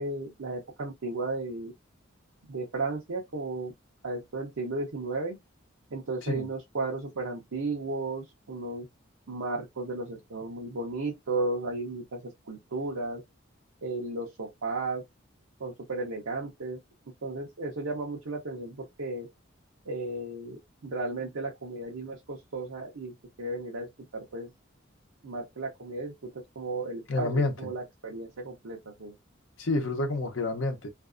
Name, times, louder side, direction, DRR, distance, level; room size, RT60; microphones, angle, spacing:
voice 1, 0.0-1.7 2.5-3.7 4.0-5.4 5.9-8.9 9.3-12.2 12.5-13.2 13.8-15.0 15.6-16.8 17.2-19.3 19.9-24.5 25.2-29.1, right 3 dB, 80° right, 0.7 m, -34 dB
voice 2, 27.1-27.7 29.6-30.9, left 2 dB, 70° left, 0.8 m, -29 dB
2.6 x 2.3 x 2.4 m
head